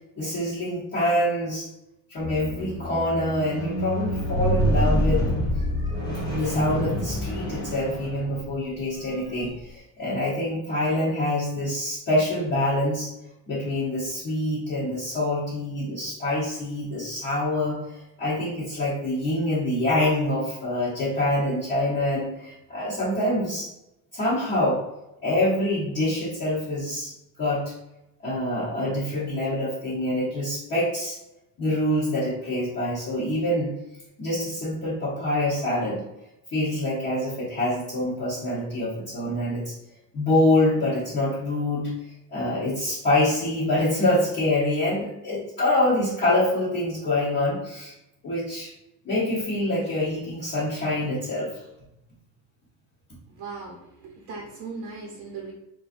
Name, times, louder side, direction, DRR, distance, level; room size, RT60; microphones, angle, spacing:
voice 1, 0.2-1.7 2.1-5.2 5.5-13.1 13.5-23.7 24.1-24.8 25.2-27.1 27.4-27.7 28.2-31.2 31.6-33.7 34.2-36.0 36.5-39.7 40.1-41.9 42.3-47.9 48.2-48.7 49.0-51.5, left 1 dB, 30° left, -11 dB, 0.9 m, -25 dB
Squeak, 2.2-8.5 9.3-9.4, equal, 10° left, 0.5 m, -27 dB
voice 2, 53.3-55.5, right 4 dB, 55° right, -2 dB, 0.7 m, -38 dB
3.8 x 2.6 x 2.5 m, 0.89 s
cardioid pair, 170°, 42 cm